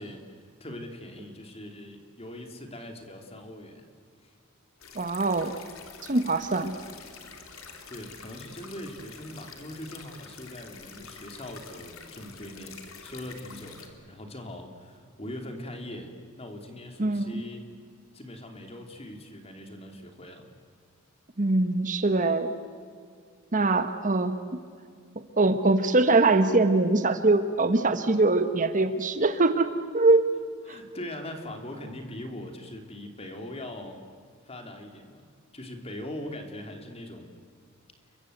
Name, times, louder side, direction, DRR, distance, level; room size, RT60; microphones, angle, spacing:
voice 1, 0.0-3.8 4.2-4.3 7.9-17.8 18.1-20.5 30.7-34.0 34.4-35.3 35.5-37.3, left 1 dB, 30° left, 5 dB, 3.1 m, -41 dB
sound 1, 4.8-13.9, left 5 dB, 75° left, 3.2 m, -47 dB
voice 2, 4.9-5.5 6.0-6.7 17.0-17.4 21.4-22.5 23.5-24.3 25.4-30.3 30.7-30.8, right 2 dB, 40° right, 9 dB, 1.2 m, -23 dB
29.5 x 23.5 x 8.1 m, 2.1 s
head